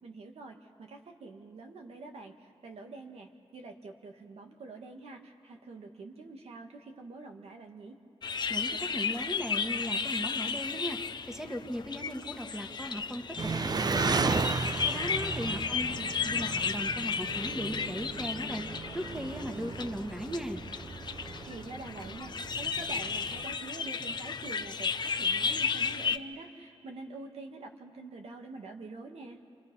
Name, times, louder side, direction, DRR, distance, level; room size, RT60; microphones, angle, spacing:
voice 1, 0.0-8.0 15.5-16.2 21.4-29.4, right 3 dB, 90° right, 3 dB, 1.8 m, -46 dB
sound 1, 8.2-26.2, left 5 dB, 45° left, 0.7 m, -34 dB
voice 2, 8.5-11.0 11.3-14.4 14.8-15.9 16.2-18.6 18.9-20.6, equal, 5° right, 5 dB, 1.5 m, -37 dB
Engine, 13.4-23.6, right 4 dB, 40° right, 0.7 m, -35 dB
29.0 x 27.5 x 5.6 m, 2.3 s
wide cardioid pair, 100°, 10 cm